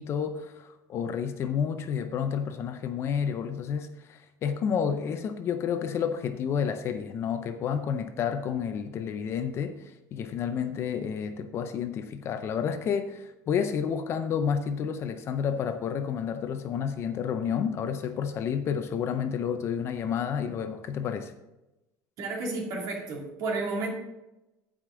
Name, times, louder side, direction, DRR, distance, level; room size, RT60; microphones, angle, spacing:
voice 1, 0.0-9.8 10.1-21.3, left 7 dB, 35° left, 9 dB, 0.5 m, -30 dB
voice 2, 22.2-23.9, right 3 dB, 50° right, 0 dB, 2.3 m, -31 dB
14.5 x 5.0 x 3.7 m, 0.98 s
cardioid pair, 170°, 8 cm